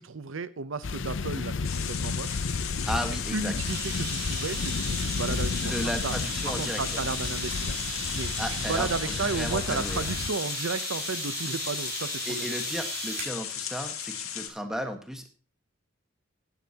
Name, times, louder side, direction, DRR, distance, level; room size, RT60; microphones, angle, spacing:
voice 1, 0.0-2.4 3.3-6.1 6.4-7.8 8.1-12.5, right 4 dB, 70° right, 15 dB, 0.7 m, -33 dB
sound 1, 0.8-10.3, left 4 dB, 65° left, 0.6 m, -33 dB
sound 2, 1.6-14.5, left 9 dB, 85° left, 2.0 m, -36 dB
voice 2, 2.8-3.5 5.6-7.0 8.4-10.1 12.2-15.3, equal, ahead, 5 dB, 1.4 m, -34 dB
sound 3, 3.6-13.4, right 2 dB, 50° right, 5.6 m, -36 dB
15.5 x 9.8 x 2.9 m, 0.34 s
head